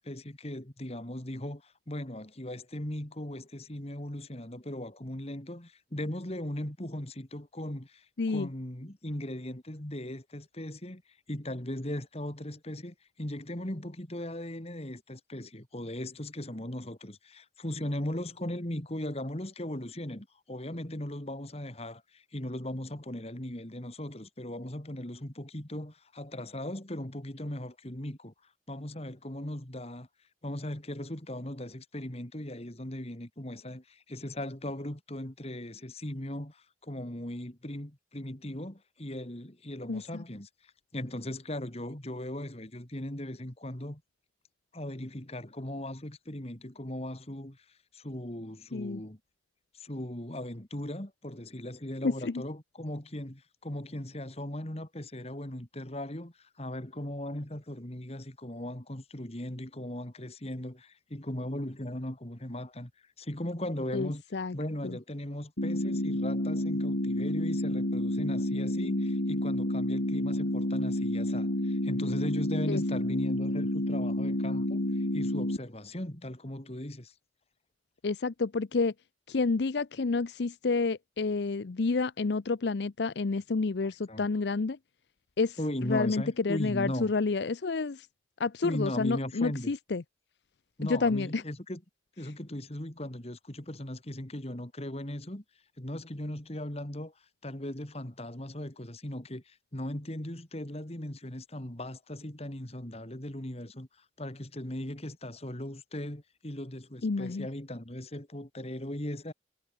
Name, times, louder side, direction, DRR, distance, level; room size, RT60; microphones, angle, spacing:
voice 1, 0.0-11.0 11.3-28.3 28.7-30.1 30.4-44.0 44.7-47.6 47.9-49.2 49.7-62.9 63.2-64.2 64.5-77.1 84.1-84.3 85.6-87.1 88.6-89.7 90.8-91.8 92.2-95.4 95.8-97.1 97.4-109.3, left 1 dB, 35° left, 2.7 m, -38 dB
voice 2, 8.2-8.5 39.9-40.2 48.7-49.0 52.0-52.4 63.9-64.5 64.8-64.9 72.7-72.8 78.0-78.9 79.3-84.8 85.4-88.1 88.4-90.0 90.8-91.4 107.0-107.5, left 4 dB, 70° left, 0.6 m, -29 dB
sound 1, 65.6-75.6, left 1 dB, 90° left, 3.7 m, -30 dB
head